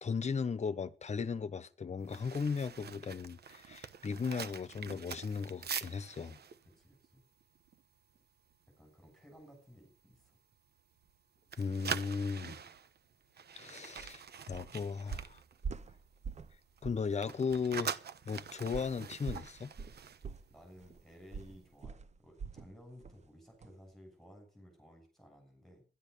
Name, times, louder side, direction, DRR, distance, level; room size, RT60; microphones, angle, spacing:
voice 1, 0.0-6.4 11.6-12.6 13.6-14.2 14.5-15.4 16.8-17.9 18.2-19.7, left 5 dB, 40° left, 0.9 m, -36 dB
sound 1, 2.0-8.2 8.5-8.7 9.1-9.4 9.9-11.2 11.4-16.2 16.4-21.0 21.2-21.5, right 7 dB, 70° right, 1.0 m, -44 dB
voice 2, 6.8-7.2 8.8-10.3 20.5-25.8, equal, ahead, 6.9 m, -57 dB
sound 2, 14.0-14.1 14.5-14.8 15.1-16.6 16.8-17.1 17.5-17.6 18.7-22.7 23.0-23.3 23.6-23.7, right 5 dB, 40° right, 0.6 m, -44 dB
12.5 x 11.5 x 6.8 m
wide cardioid pair, 150°, 17 cm